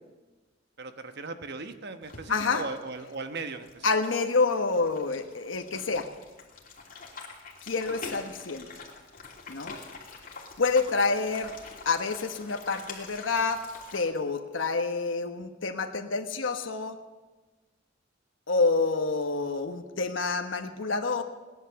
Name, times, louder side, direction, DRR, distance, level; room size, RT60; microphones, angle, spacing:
voice 1, 0.8-3.9 10.2-10.3, right 3 dB, 60° right, 8 dB, 1.1 m, -38 dB
sound 1, 2.0-14.0, left 4 dB, 50° left, 2.8 m, -45 dB
voice 2, 2.3-2.6 3.8-6.1 7.6-8.7 9.5-9.8 10.6-11.5 11.8-13.6 13.9-17.0 18.5-21.2, left 4 dB, 80° left, 5 dB, 1.2 m, -28 dB
18.5 x 10.5 x 7.0 m, 1.2 s
head